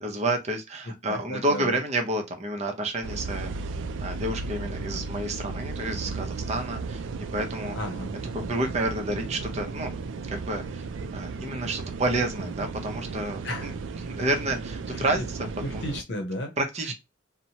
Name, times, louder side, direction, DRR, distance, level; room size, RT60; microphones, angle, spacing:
voice 1, 0.0-3.5 4.0-7.1 7.3-7.8 8.3-9.9 10.3-10.9 11.1-13.7 14.1-15.2 15.7-15.8 16.6-16.9, right 2 dB, 35° right, 0.6 m, -29 dB
voice 2, 0.8-1.8 7.7-8.1 13.4-13.7 14.9-15.3 15.6-16.5 16.9-17.0, left 1 dB, 65° left, 0.7 m, -34 dB
sound 1, 3.0-16.0, right 4 dB, 75° right, 0.3 m, -35 dB
2.8 x 2.1 x 2.8 m
head